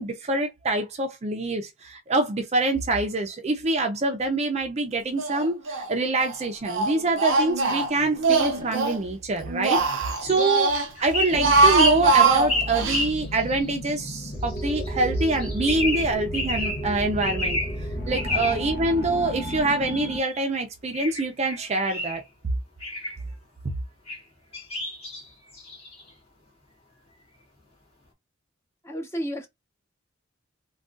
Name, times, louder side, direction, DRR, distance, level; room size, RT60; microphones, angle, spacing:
voice 1, 0.0-9.8 10.2-17.6 18.1-22.2, right 2 dB, 35° right, 0.5 m, -25 dB
Speech, 5.2-5.9 6.2-9.0 9.4-10.9 11.3-13.0, right 3 dB, 75° right, 0.7 m, -22 dB
sound 1, 10.0-10.4 10.9-13.7 14.4-14.9 15.2-16.9 17.2-17.8 18.1-18.6 19.4-20.5 20.9-22.2 22.8-23.2 24.1-24.2 24.5-26.1, left 2 dB, 30° left, 1.5 m, -31 dB
sound 2, 11.3-20.2, equal, 55° left, 0.9 m, -33 dB
voice 2, 28.8-29.5, equal, 15° left, 0.7 m, -31 dB
3.5 x 2.3 x 2.5 m
head